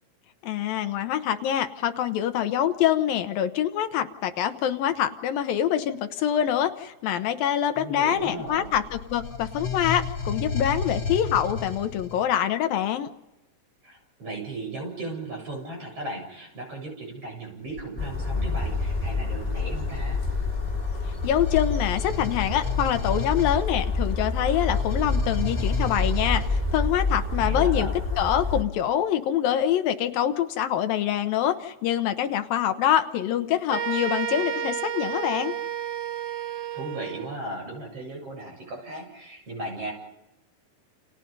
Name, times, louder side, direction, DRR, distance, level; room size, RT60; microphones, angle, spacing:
voice 1, 0.4-13.1 21.2-27.9 28.2-35.6, left 10 dB, 80° left, 8 dB, 2.9 m, -25 dB
voice 2, 7.8-8.7 13.8-20.2 27.4-27.9 36.7-39.9, right 2 dB, 40° right, 1 dB, 8.9 m, -36 dB
sound 1, 8.2-12.3 17.7-17.9 18.7-26.5, left 4 dB, 40° left, 3.4 m, -34 dB
sound 2, 18.0-28.6, left 3 dB, 10° left, 2.7 m, -27 dB
sound 3, 33.7-37.4, right 8 dB, 65° right, 2.5 m, -31 dB
29.5 x 29.0 x 5.4 m, 0.95 s
omnidirectional pair, 4.1 m